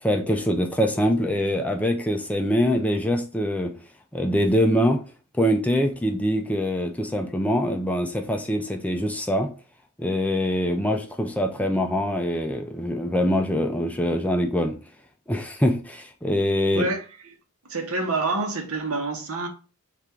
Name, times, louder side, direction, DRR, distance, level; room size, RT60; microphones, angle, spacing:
voice 1, 0.0-3.7 4.1-5.0 5.4-9.5 10.0-14.8 15.3-16.9, equal, 5° left, 0.4 m, -24 dB
voice 2, 16.7-17.4 17.7-19.5, right 3 dB, 75° right, 0.9 m, -27 dB
3.4 x 2.5 x 4.4 m
head